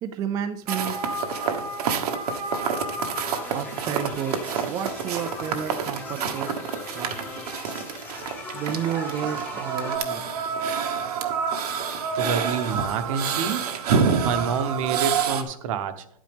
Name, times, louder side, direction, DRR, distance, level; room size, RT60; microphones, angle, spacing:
voice 1, 0.0-1.0 3.5-4.4 4.7-6.5 6.9-7.3 8.5-10.2, right 8 dB, 20° right, 8 dB, 0.4 m, -31 dB
sound 1, 0.7-15.4, right 6 dB, 85° right, 1.4 m, -28 dB
sound 2, 3.2-10.0, left 4 dB, 10° left, 1.0 m, -39 dB
voice 2, 12.1-13.7 14.2-16.2, right 6 dB, 60° right, 10 dB, 1.1 m, -28 dB
11.5 x 9.1 x 3.5 m, 0.72 s
supercardioid pair, 160°, 19 cm